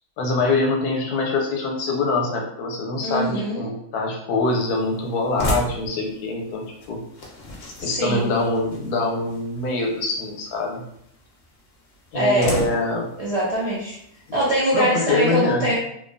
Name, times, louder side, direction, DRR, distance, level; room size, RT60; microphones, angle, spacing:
voice 1, 0.2-7.0 7.8-10.8 12.1-13.1 14.7-15.6, left 3 dB, 85° left, 0 dB, 1.2 m, -24 dB
voice 2, 3.0-3.7 7.8-8.3 12.1-12.6 13.2-14.0 14.3-15.7, right 1 dB, 60° right, -8 dB, 0.3 m, -22 dB
sound 1, 4.5-14.6, left 1 dB, 55° left, 0.8 m, -36 dB
2.9 x 2.2 x 2.5 m, 0.74 s
omnidirectional pair, 1.6 m